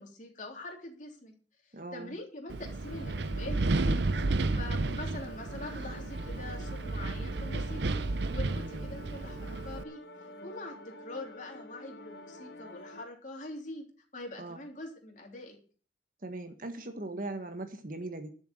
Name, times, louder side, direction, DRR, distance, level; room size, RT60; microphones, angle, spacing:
voice 1, 0.0-1.3 1.6-4.0 4.6-7.9 8.3-13.8 14.1-15.6, left 2 dB, 40° left, 1 dB, 3.4 m, -44 dB
voice 2, 1.7-2.1 8.5-8.8 14.4-14.6 16.2-18.3, right 2 dB, 45° right, 8 dB, 1.5 m, -39 dB
Wind, 2.5-9.8, right 2 dB, 65° right, 0.6 m, -32 dB
sound 1, 2.8-13.0, left 1 dB, 60° left, 1.5 m, -48 dB
12.0 x 7.1 x 7.7 m, 0.41 s
head